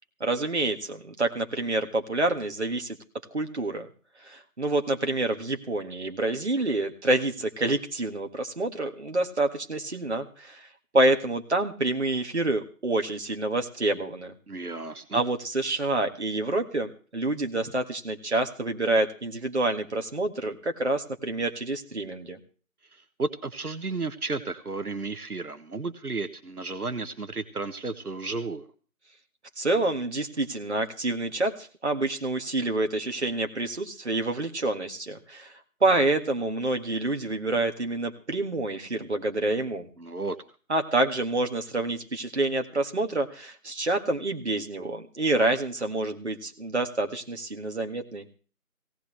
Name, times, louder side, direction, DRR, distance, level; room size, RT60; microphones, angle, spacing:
voice 1, 0.2-3.0 3.3-3.9 4.2-10.7 10.9-14.3 15.1-22.4 29.6-35.5 35.8-39.9 40.7-48.2, right 2 dB, 50° right, 4 dB, 1.8 m, -27 dB
voice 2, 14.5-15.2 23.2-28.7 40.0-40.4, right 3 dB, 80° right, 10 dB, 1.3 m, -33 dB
17.5 x 17.0 x 3.3 m, 0.39 s
figure-of-eight pair, 165°, 44 cm